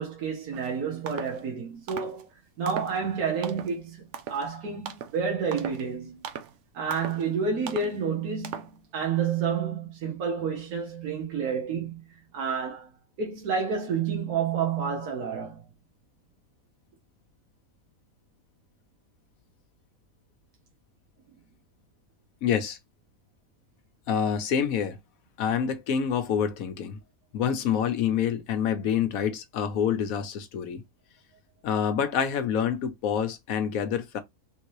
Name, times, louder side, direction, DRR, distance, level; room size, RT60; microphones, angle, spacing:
voice 1, 0.0-2.3 2.6-6.3 6.7-12.0 12.3-12.9 13.2-15.6, right 6 dB, 90° right, 1.4 m, -29 dB
sound 1, 0.5-0.7 1.1-1.4 1.9-2.2 2.7-3.0 3.4-3.8 4.1-4.5 4.9-5.2 5.5-5.9 6.2-6.5 6.9-7.3 7.7-7.9 8.4-8.8, right 8 dB, 65° right, 0.8 m, -38 dB
voice 2, 22.4-22.8 24.1-25.0 25.4-27.0 27.3-30.8 31.6-34.2, left 8 dB, 75° left, 1.1 m, -27 dB
3.6 x 2.7 x 3.0 m
omnidirectional pair, 1.5 m